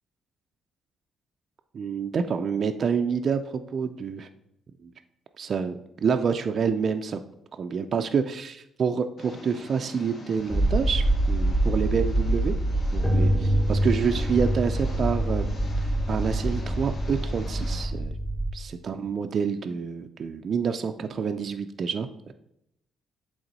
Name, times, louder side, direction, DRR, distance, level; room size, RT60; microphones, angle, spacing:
voice 1, 1.7-4.3 4.8-4.9 5.4-7.2 7.6-12.6 12.9-15.5 15.8-18.1 18.5-22.3, right 6 dB, 50° right, 7 dB, 0.4 m, -28 dB
Engine, 9.2-17.8, left 3 dB, 50° left, 1.2 m, -44 dB
sound 1, 10.5-18.5, right 1 dB, 15° left, 1.1 m, -25 dB
7.9 x 3.5 x 4.0 m, 0.79 s
cardioid pair, 90°, 0 cm